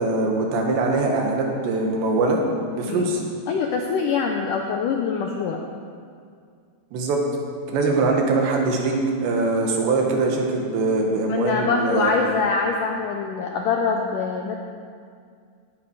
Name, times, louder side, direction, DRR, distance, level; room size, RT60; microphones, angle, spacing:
voice 1, 0.0-2.4 2.8-3.2 6.9-7.2 7.7-9.0 9.2-12.2, right 3 dB, 90° right, 1 dB, 3.9 m, -22 dB
voice 2, 3.5-5.6 11.3-14.6, left 5 dB, 85° left, 2 dB, 1.8 m, -24 dB
18.5 x 10.0 x 4.8 m, 2.2 s
omnidirectional pair, 4.9 m